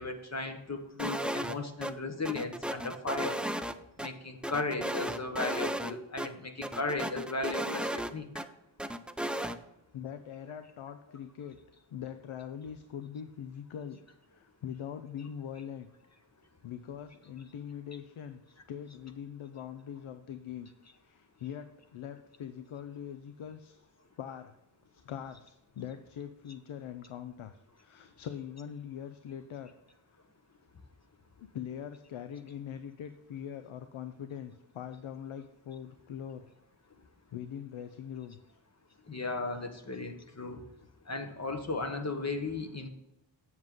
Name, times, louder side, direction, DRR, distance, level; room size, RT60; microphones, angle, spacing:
voice 1, 0.0-3.4 4.0-8.3 39.1-40.6 41.1-42.9, left 3 dB, 35° left, 6 dB, 1.1 m, -36 dB
sound 1, 1.0-1.6 1.8-1.9 2.3-4.1 4.4-5.9 6.2-6.3 6.6-8.5 8.8-9.6, right 1 dB, ahead, 0.3 m, -34 dB
voice 2, 9.9-11.6 11.9-14.0 14.3-15.9 16.6-20.7 21.0-23.9 24.2-24.5 24.9-29.7 31.4-36.4 37.3-38.4, left 9 dB, 85° left, 9 dB, 0.6 m, -42 dB
7.8 x 7.4 x 3.7 m, 0.87 s
wide cardioid pair, 95°, 47 cm